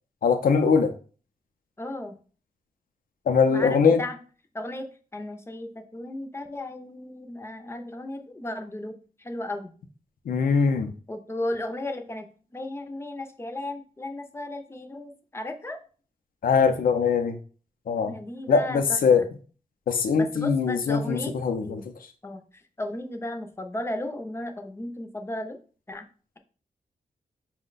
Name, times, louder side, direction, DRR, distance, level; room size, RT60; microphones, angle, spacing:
voice 1, 0.2-0.9 3.3-4.0 10.3-10.9 16.4-17.4 17.9-18.1 18.5-19.2 19.9-21.8, left 5 dB, 85° left, 7 dB, 0.5 m, -22 dB
voice 2, 1.8-2.1 3.5-4.2 4.5-9.7 11.1-15.8 18.0-19.0 20.2-21.3 21.6-21.9 22.2-25.6 25.9-26.1, left 1 dB, 20° left, 5 dB, 0.5 m, -35 dB
5.4 x 2.1 x 3.9 m, 0.39 s
wide cardioid pair, 165°, 14 cm